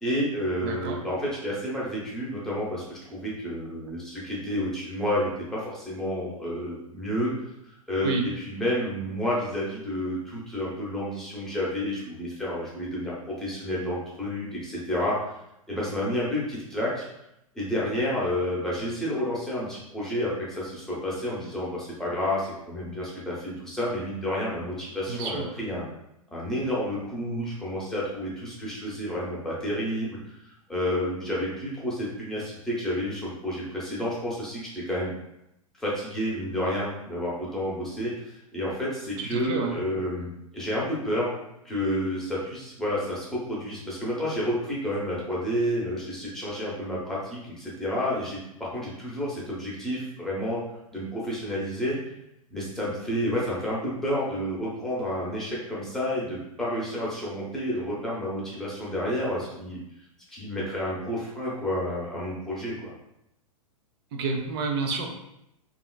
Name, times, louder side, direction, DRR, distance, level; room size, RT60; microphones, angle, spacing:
voice 1, 0.0-7.3 7.6-15.4 15.7-17.1 17.5-25.9 26.3-35.1 35.8-41.4 41.6-50.6 50.9-52.0 52.5-59.8 60.3-62.9, equal, ahead, -7 dB, 0.8 m, -30 dB
voice 2, 0.6-1.0 8.0-8.2 25.1-25.5 39.2-39.8 64.1-65.1, right 4 dB, 40° right, 3 dB, 0.5 m, -29 dB
2.8 x 2.4 x 2.3 m, 0.82 s
figure-of-eight pair, 105°, 19 cm